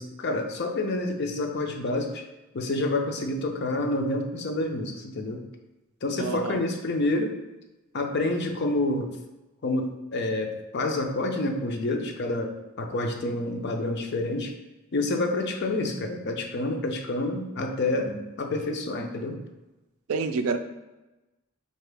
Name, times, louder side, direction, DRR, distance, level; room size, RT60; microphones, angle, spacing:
voice 1, 0.0-2.2 2.5-5.4 6.0-7.4 7.9-9.2 9.6-14.5 14.9-19.4, left 2 dB, 55° left, 4 dB, 0.5 m, -28 dB
voice 2, 6.2-6.6 20.1-20.6, right 4 dB, 85° right, 9 dB, 0.4 m, -27 dB
3.8 x 2.7 x 3.3 m, 1.0 s
head